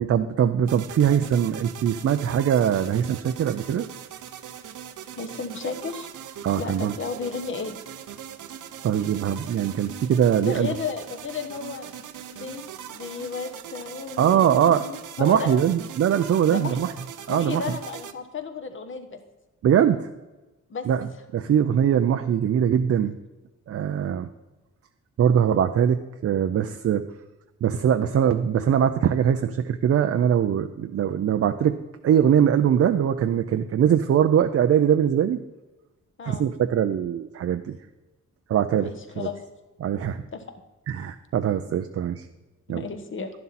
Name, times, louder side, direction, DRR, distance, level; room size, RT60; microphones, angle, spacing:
voice 1, 0.0-3.9 6.4-6.9 8.8-10.7 14.2-14.9 15.2-16.9 17.3-17.6 19.6-20.1 20.9-21.1 21.3-23.1 23.7-24.3 25.2-27.0 27.6-31.8 32.0-35.4 36.2-37.8 38.5-39.3 39.8-40.2 40.9-42.3 42.7-42.8, right 9 dB, 50° right, 8 dB, 0.5 m, -22 dB
sound 1, 0.7-18.1, right 9 dB, 80° right, 0.8 m, -41 dB
voice 2, 5.2-6.1 6.6-7.8 10.4-11.9 12.3-12.6 12.9-15.6 16.5-16.8 17.3-19.2 20.7-20.9 36.2-36.5 38.8-39.4 40.3-40.4 42.7-43.3, left 5 dB, 40° left, 7 dB, 1.2 m, -33 dB
12.0 x 11.0 x 4.2 m, 1.1 s
wide cardioid pair, 165°, 30 cm